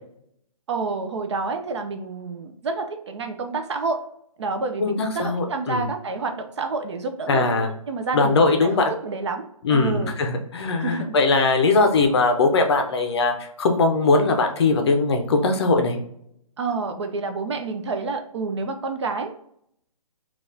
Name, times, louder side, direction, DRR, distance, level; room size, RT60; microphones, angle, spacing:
voice 1, 0.7-4.0 4.4-10.1 10.8-11.1 16.6-19.3, right 4 dB, 50° right, 6 dB, 0.4 m, -29 dB
voice 2, 4.8-5.9 7.3-7.7 8.1-8.9 9.6-16.0, left 3 dB, 45° left, 5 dB, 0.5 m, -20 dB
3.9 x 2.3 x 2.6 m, 0.71 s
hypercardioid pair, 150°, 19 cm